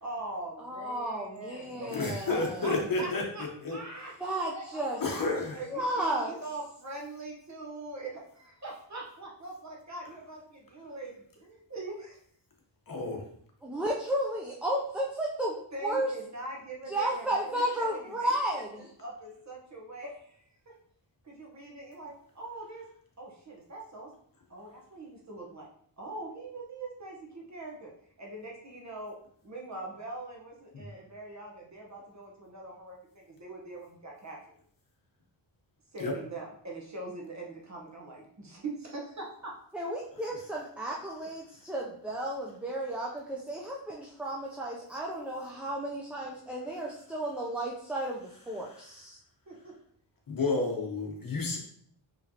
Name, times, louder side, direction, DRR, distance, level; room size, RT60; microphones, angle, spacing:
voice 1, 0.0-2.0 2.3-4.8 5.5-12.2 15.7-20.7 21.2-22.8 23.2-24.1 24.5-25.7 26.0-27.9 28.2-29.2 29.4-34.6 35.9-39.5 49.5-49.8, right 2 dB, 35° right, -2 dB, 1.0 m, -42 dB
voice 2, 0.6-2.8 4.2-5.0 5.7-6.3 13.6-16.1 16.9-18.8 39.7-49.2, right 1 dB, 5° right, -3 dB, 0.4 m, -33 dB
voice 3, 1.9-3.2 3.6-3.8 5.0-5.6 12.9-13.2 30.7-30.9 36.0-36.1 50.3-51.6, left 3 dB, 50° left, 1 dB, 1.0 m, -30 dB
4.9 x 3.2 x 2.8 m, 0.63 s
wide cardioid pair, 125°, 45 cm